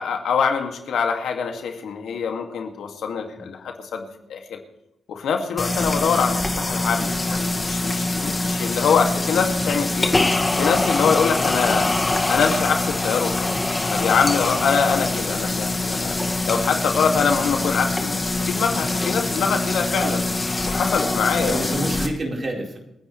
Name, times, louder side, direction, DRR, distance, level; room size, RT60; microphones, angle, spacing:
voice 1, 0.0-4.6 5.1-10.1 10.6-11.9 12.3-13.6 13.9-16.2 16.5-20.2 20.6-21.8, left 6 dB, 75° left, 4 dB, 2.3 m, -24 dB
sound 1, 5.6-22.1, left 2 dB, 25° left, 2.0 m, -24 dB
voice 2, 21.4-22.8, right 1 dB, 45° right, -1 dB, 4.5 m, -28 dB
28.5 x 9.9 x 3.3 m, 0.86 s
supercardioid pair, 50°, 0 cm